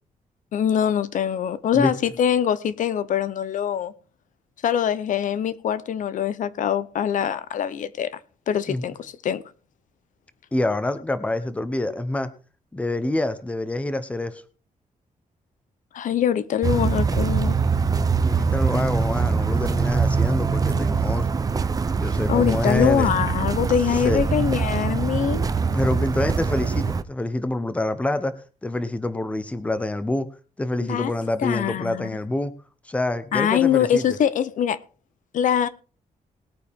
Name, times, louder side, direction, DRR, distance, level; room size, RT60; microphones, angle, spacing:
voice 1, 0.5-3.9 4.6-8.2 8.5-9.4 15.9-17.6 22.3-25.5 30.9-31.1 31.4-32.1 33.3-34.8 35.3-35.7, left 9 dB, 70° left, 0.8 m, -23 dB
voice 2, 10.5-12.3 12.7-14.4 18.2-21.5 22.0-23.1 24.0-24.2 25.7-28.3 28.6-30.3 30.6-32.5 32.8-34.0, left 2 dB, 10° left, 0.9 m, -26 dB
sound 1, 16.6-27.0, right 5 dB, 25° right, 0.6 m, -23 dB
20.0 x 9.0 x 3.6 m
wide cardioid pair, 175°, 14 cm